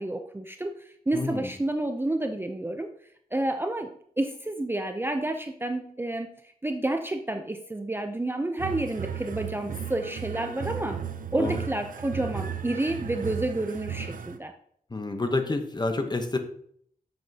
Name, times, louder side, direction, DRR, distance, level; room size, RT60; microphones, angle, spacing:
voice 1, 0.0-2.9 3.3-3.9 4.2-6.3 6.6-11.0 11.3-14.5, right 1 dB, 15° right, 6 dB, 0.5 m, -30 dB
voice 2, 1.1-1.5 11.4-11.6 14.9-16.4, left 2 dB, 30° left, 6 dB, 0.9 m, -28 dB
sound 1, 8.6-14.4, right 7 dB, 65° right, 0.5 m, -35 dB
7.7 x 7.3 x 2.8 m, 0.63 s
wide cardioid pair, 130°, 15 cm